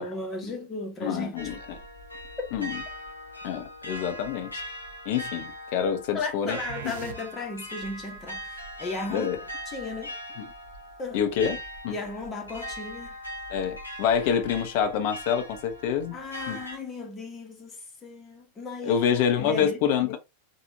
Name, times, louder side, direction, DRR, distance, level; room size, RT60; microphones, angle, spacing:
voice 1, 0.0-1.6 2.4-2.5 6.1-9.3 9.7-10.1 11.0-11.2 11.9-13.2 16.1-19.0 19.4-19.8, left 3 dB, 20° left, 1.4 m, -35 dB
voice 2, 1.0-1.6 2.5-2.8 3.4-4.6 5.0-6.6 9.1-9.4 11.1-11.9 13.5-16.2 16.5-16.6 18.8-20.2, left 8 dB, 50° left, 0.9 m, -27 dB
sound 1, 1.4-16.8, equal, 85° left, 1.0 m, -40 dB
sound 2, 6.5-7.6, right 7 dB, 60° right, 0.5 m, -40 dB
4.2 x 2.7 x 2.8 m
figure-of-eight pair, 90°, 0 cm